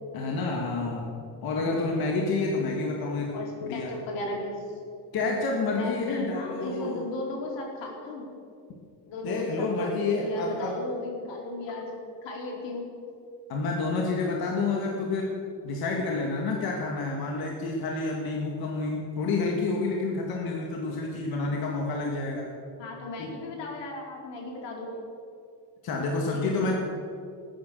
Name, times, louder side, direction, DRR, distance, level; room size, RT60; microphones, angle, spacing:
voice 1, 0.1-1.1 1.4-3.3 3.7-3.9 5.1-7.0 9.2-10.8 13.5-15.3 15.6-22.5 23.2-23.3 25.8-26.7, left 3 dB, 60° left, -1 dB, 2.1 m, -29 dB
voice 2, 3.3-4.6 5.7-8.3 9.1-11.9 12.2-12.9 22.8-24.9 26.3-26.6, left 2 dB, 90° left, -1 dB, 4.3 m, -35 dB
20.0 x 10.0 x 6.9 m, 2.4 s
cardioid pair, 180°, 42 cm